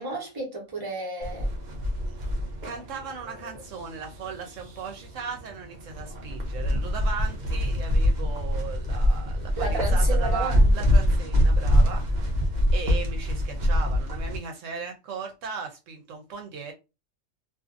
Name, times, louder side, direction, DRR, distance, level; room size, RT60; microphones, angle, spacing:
voice 1, 0.0-1.5 9.6-10.7, right 3 dB, 20° right, 1.0 m, -32 dB
sound 1, 1.2-14.4, equal, 45° right, 0.6 m, -24 dB
voice 2, 2.6-12.0 12.7-16.7, right 5 dB, 75° right, 1.0 m, -37 dB
2.6 x 2.5 x 2.4 m
omnidirectional pair, 1.3 m